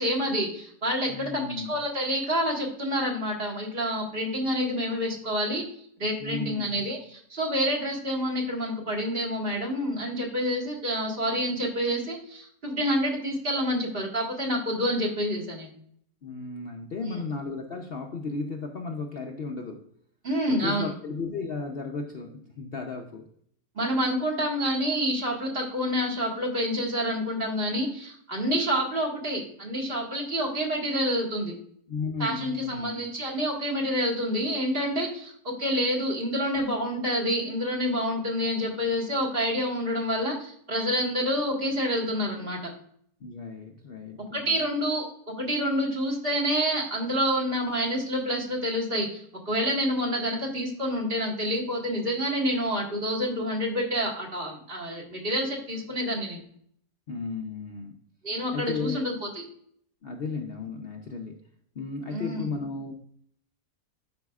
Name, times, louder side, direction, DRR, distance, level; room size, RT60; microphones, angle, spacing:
voice 1, 0.0-1.4 1.7-5.6 6.0-15.7 17.1-17.2 20.2-20.9 23.8-31.5 32.2-42.7 44.3-56.4 58.2-59.4 62.1-62.5, equal, 40° right, -1 dB, 1.9 m, -28 dB
voice 2, 1.1-1.8 6.2-6.8 16.2-19.9 20.5-23.3 31.9-33.0 43.2-44.6 57.1-58.0 58.5-59.1 60.0-61.4 61.7-62.9, left 4 dB, 50° left, 2 dB, 0.8 m, -34 dB
12.0 x 4.8 x 2.3 m, 0.64 s
omnidirectional pair, 1.5 m